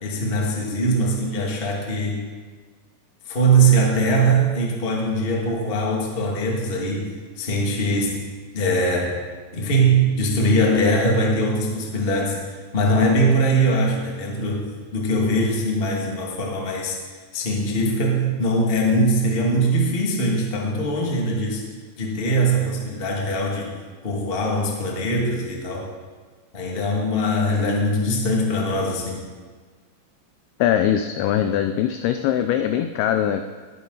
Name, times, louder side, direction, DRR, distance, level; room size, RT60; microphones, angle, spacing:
voice 1, 0.0-2.2 3.2-8.2 8.5-9.2 9.5-12.4 12.7-17.0 17.3-21.6 22.0-23.7 24.0-25.9 26.5-29.2, right 1 dB, 55° left, -1 dB, 0.6 m, -21 dB
voice 2, 30.6-33.5, left 10 dB, 85° left, 8 dB, 2.2 m, -21 dB
19.5 x 10.5 x 4.0 m, 1.5 s
omnidirectional pair, 5.1 m